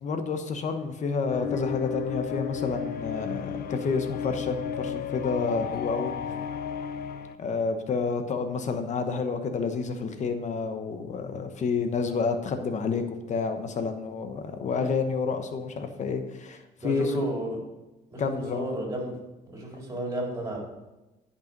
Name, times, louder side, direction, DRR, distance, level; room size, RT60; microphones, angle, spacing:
voice 1, 0.0-6.1 7.4-13.0 13.3-17.3 18.2-18.7, left 4 dB, 45° left, 7 dB, 1.1 m, -29 dB
sound 1, 1.3-7.4, left 7 dB, 65° left, 0.6 m, -33 dB
voice 2, 16.8-17.6 18.1-19.2 19.5-20.6, right 1 dB, 15° right, -2 dB, 3.8 m, -33 dB
10.5 x 5.7 x 5.3 m, 1.0 s
cardioid pair, 110°, 17 cm